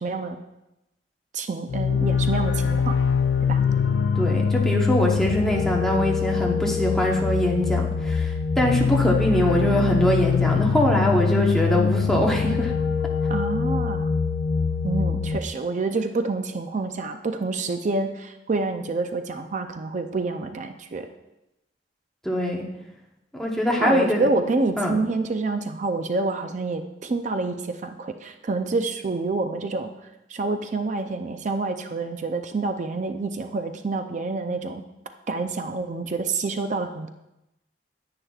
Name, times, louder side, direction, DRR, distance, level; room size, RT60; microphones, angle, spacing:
voice 1, 0.0-0.4 1.3-2.9 3.5-3.6 13.3-14.1 14.8-21.1 23.8-29.9 30.3-34.8 35.3-37.1, right 3 dB, 40° right, 8 dB, 0.4 m, -27 dB
sound 1, 1.7-15.4, left 5 dB, 85° left, 0.5 m, -23 dB
voice 2, 4.2-12.7 22.2-22.7 23.3-24.3 24.8-25.0, equal, ahead, -2 dB, 1.0 m, -23 dB
9.9 x 8.7 x 2.4 m, 0.92 s
head